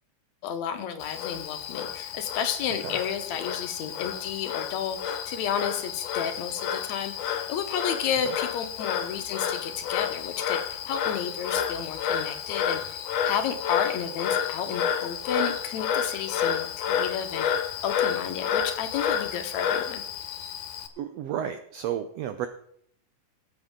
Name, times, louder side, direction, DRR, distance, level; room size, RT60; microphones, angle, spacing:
voice 1, 0.4-17.5 17.8-20.0, left 8 dB, 70° left, 7 dB, 2.3 m, -32 dB
Frog, 1.0-20.9, left 8 dB, 90° left, 2.5 m, -30 dB
voice 2, 21.0-22.5, right 10 dB, 80° right, 9 dB, 1.5 m, -32 dB
18.5 x 8.1 x 3.7 m, 0.70 s
omnidirectional pair, 3.5 m